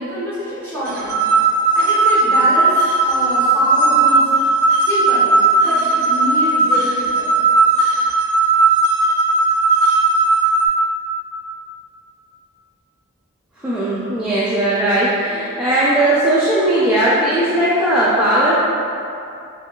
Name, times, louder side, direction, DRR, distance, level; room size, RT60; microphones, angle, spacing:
voice 1, 0.0-2.8 3.0-4.3 4.9-5.3 5.6-7.3, left 1 dB, 10° left, -11 dB, 1.1 m, -26 dB
sound 1, 0.9-10.7, right 3 dB, 90° right, 0.5 m, -16 dB
voice 2, 13.6-18.5, right 1 dB, 5° right, -10 dB, 0.4 m, -17 dB
4.6 x 3.3 x 2.3 m, 2.6 s
head